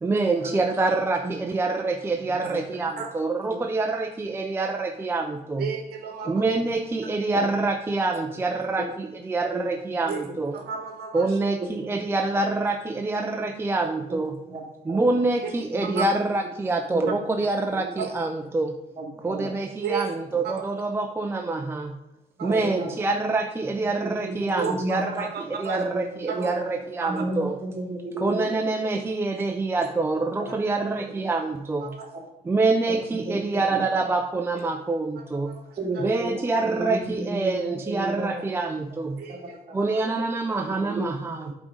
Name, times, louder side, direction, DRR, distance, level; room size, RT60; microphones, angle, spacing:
voice 1, 0.0-5.7 6.3-10.6 11.1-14.4 14.9-18.7 19.2-22.0 22.4-27.5 28.2-32.0 32.4-35.6 36.0-39.2 39.7-41.5, right 3 dB, 15° right, 4 dB, 0.5 m, -26 dB
voice 2, 2.2-2.6 3.5-3.6 6.2-6.6 7.3-7.4 8.8-8.9 9.5-9.9 10.2-10.3 14.1-14.2 14.5-14.6 14.9-15.2 15.7-16.0 16.9-17.2 17.8-17.9 19.0-19.5 22.5-22.9 24.0-25.0 25.7-26.0 26.3-26.6 27.0-28.6 29.7-29.8 30.4-30.5 31.2-31.3 32.1-32.2 32.9-33.8 35.8-36.4 36.8-38.4 39.3-39.8 40.7-41.5, right 2 dB, 35° right, -2 dB, 2.3 m, -33 dB
voice 3, 5.6-6.4 10.1-10.3 10.5-11.3 16.0-16.1 19.8-20.0 20.4-20.5 22.4-22.5 24.6-25.8 26.3-26.5 27.0-27.1 31.8-32.1 35.5-35.6 39.2-39.4 39.9-40.0, right 6 dB, 70° right, 3 dB, 1.2 m, -32 dB
8.2 x 3.7 x 5.3 m, 0.94 s
cardioid pair, 110°, 17 cm